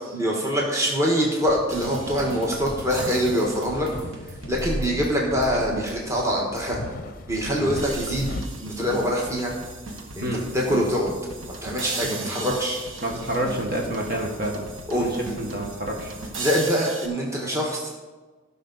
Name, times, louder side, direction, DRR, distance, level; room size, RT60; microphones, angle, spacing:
voice 1, 0.1-3.9 4.5-6.8 7.3-8.3 8.6-9.5 10.2-10.3 10.5-11.1 11.6-12.8 14.9-15.3 16.4-17.9, equal, 15° right, -2 dB, 1.4 m, -24 dB
sound 1, 1.5-8.4, left 1 dB, 40° left, 0.6 m, -36 dB
sound 2, 1.7-6.1 6.6-6.7 7.5-17.1, right 3 dB, 70° right, 1.3 m, -37 dB
voice 2, 13.0-15.1 15.4-16.1, right 1 dB, 45° right, 0 dB, 1.6 m, -28 dB
16.5 x 5.6 x 4.1 m, 1.3 s
head